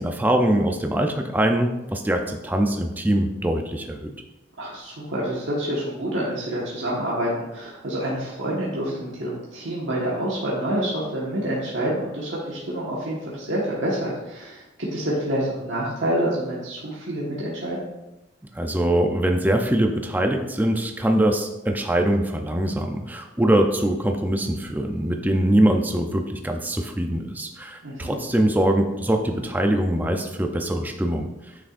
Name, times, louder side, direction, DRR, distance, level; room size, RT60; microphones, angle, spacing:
voice 1, 0.0-4.1 18.5-31.3, right 1 dB, 10° right, 4 dB, 0.5 m, -23 dB
voice 2, 4.6-17.8 27.8-28.2, right 1 dB, 85° right, -6 dB, 1.5 m, -27 dB
9.3 x 6.2 x 2.5 m, 0.99 s
head